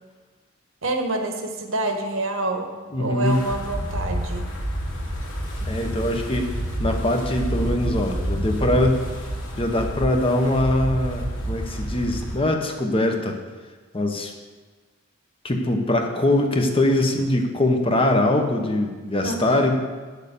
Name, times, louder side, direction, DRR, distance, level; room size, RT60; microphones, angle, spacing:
voice 1, 0.8-2.7 3.0-4.4 19.2-19.7, right 2 dB, 75° right, 5 dB, 1.3 m, -27 dB
voice 2, 2.9-3.4 5.6-6.5 6.8-9.0 9.6-13.4 13.9-14.3 15.4-19.7, left 1 dB, 25° left, 4 dB, 1.0 m, -22 dB
Wind, 3.3-12.4, right 1 dB, 75° left, 2.4 m, -29 dB
9.8 x 6.6 x 6.8 m, 1.4 s
head